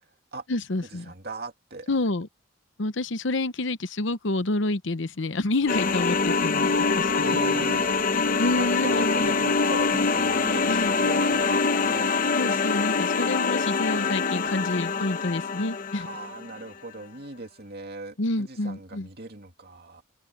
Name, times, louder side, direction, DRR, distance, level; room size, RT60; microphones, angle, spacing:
voice 1, 0.5-1.1 1.9-2.3 2.8-7.1 7.5-7.7 8.1-9.5 10.7-10.9 12.4-16.1 18.2-19.1, left 2 dB, 65° left, 0.9 m, -28 dB
voice 2, 1.0-1.9 7.2-8.0 8.5-12.2 16.0-20.0, right 2 dB, 50° right, 2.5 m, -39 dB
sound 1, 5.7-16.4, left 4 dB, 40° left, 0.8 m, -24 dB
open air
head